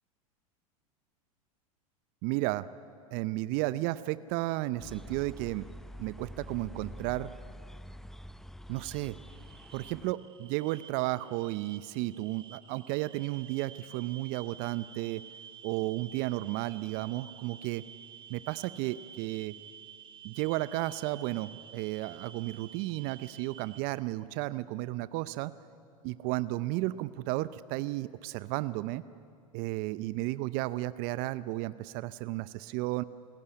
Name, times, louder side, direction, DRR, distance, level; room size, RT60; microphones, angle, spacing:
voice 1, 2.2-2.7 3.1-5.7 6.0-7.3 8.7-9.2 9.7-15.2 15.6-17.8 18.3-19.5 20.2-25.5 26.0-29.0 29.5-33.0, right 18 dB, 50° right, 16 dB, 0.6 m, -33 dB
sound 1, 4.8-10.1, equal, ahead, 0.6 m, -47 dB
sound 2, 9.3-23.8, right 8 dB, 30° right, 1.4 m, -51 dB
27.5 x 14.0 x 9.9 m, 2.4 s
hypercardioid pair, 90°, 18 cm